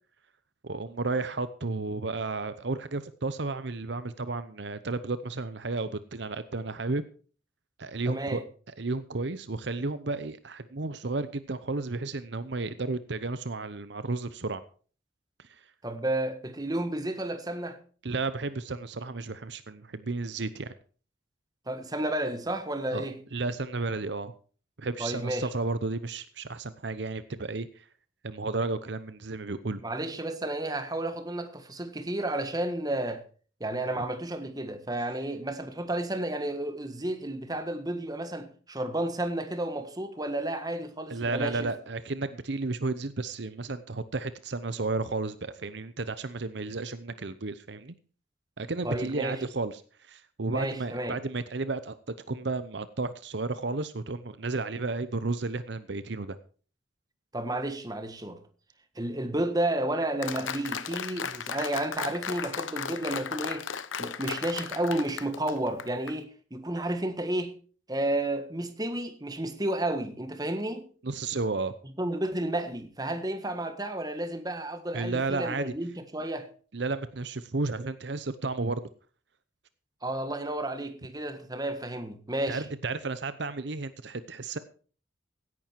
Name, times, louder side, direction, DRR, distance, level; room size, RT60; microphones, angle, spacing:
voice 1, 0.6-7.0 7.8-8.4 8.8-14.6 15.5-15.6 18.0-20.7 22.9-23.1 23.3-24.3 24.8-27.8 28.2-29.8 41.1-47.9 48.6-51.9 52.3-56.4 71.0-71.7 74.9-75.7 76.7-78.8 82.5-84.6, right 3 dB, 60° right, 0.8 m, -32 dB
voice 2, 8.1-8.4 15.8-17.8 21.7-23.2 25.0-25.5 29.8-33.2 33.6-41.7 48.8-49.4 50.5-51.2 57.3-58.4 58.9-63.7 64.0-67.5 67.9-70.9 72.0-76.5 80.0-82.7, right 1 dB, 20° right, 1.5 m, -32 dB
Applause, 60.2-66.1, left 6 dB, 80° left, 1.0 m, -35 dB
16.5 x 11.0 x 4.6 m
head